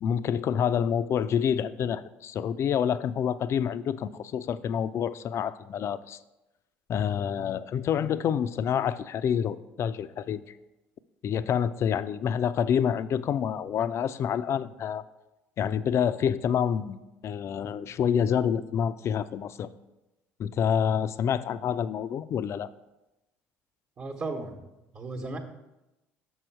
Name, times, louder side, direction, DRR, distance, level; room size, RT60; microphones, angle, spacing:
voice 1, 0.0-6.2 6.9-10.4 11.2-15.0 15.6-17.0 17.2-19.7 20.4-22.7, left 8 dB, 50° left, 14 dB, 0.4 m, -27 dB
voice 2, 24.0-24.6 24.9-25.4, right 3 dB, 45° right, 1 dB, 1.1 m, -35 dB
6.4 x 5.9 x 4.5 m, 0.97 s
hypercardioid pair, 65°, 6 cm